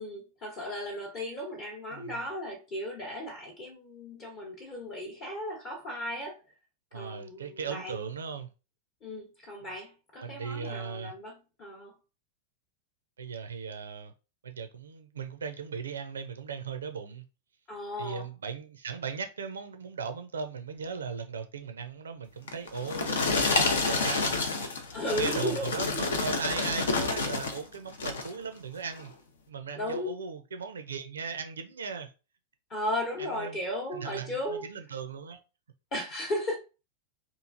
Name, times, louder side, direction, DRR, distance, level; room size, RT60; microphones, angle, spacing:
voice 1, 0.0-6.4 6.9-8.1 9.0-11.9 17.7-18.3 24.9-25.7 29.8-30.2 32.7-34.6 35.9-36.6, left 1 dB, 35° left, 0.8 m, -35 dB
voice 2, 1.9-2.2 6.9-8.5 10.2-11.1 13.2-14.1 14.4-17.2 18.0-24.3 25.1-29.1 29.5-32.1 33.2-33.6 33.9-35.4, right 6 dB, 70° right, 0.4 m, -38 dB
sound 1, 22.5-27.6 27.9-28.4 28.9-29.1, left 3 dB, 65° left, 0.5 m, -29 dB
3.0 x 2.4 x 2.5 m
figure-of-eight pair, 90°, 0 cm